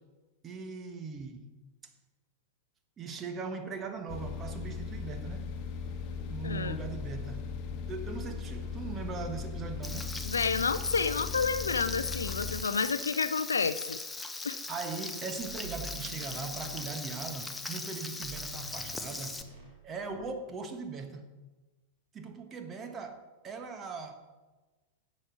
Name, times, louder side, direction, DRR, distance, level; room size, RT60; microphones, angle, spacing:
voice 1, 0.4-1.4 3.0-5.5 6.3-7.5 7.9-10.2 14.7-19.4 19.8-21.3 22.1-24.2, right 4 dB, 25° right, 1.2 m, -40 dB
sound 1, 4.1-12.6, left 5 dB, 40° left, 1.3 m, -38 dB
voice 2, 6.4-6.8 10.2-14.0 14.4-14.6, left 5 dB, 75° left, 0.5 m, -30 dB
Frying (food), 9.8-19.4, left 2 dB, 10° left, 0.9 m, -40 dB
sound 2, 15.4-17.5 18.2-19.8 20.0-20.4, right 2 dB, 80° right, 3.5 m, -47 dB
11.0 x 7.6 x 6.2 m
figure-of-eight pair, 90°, 0 cm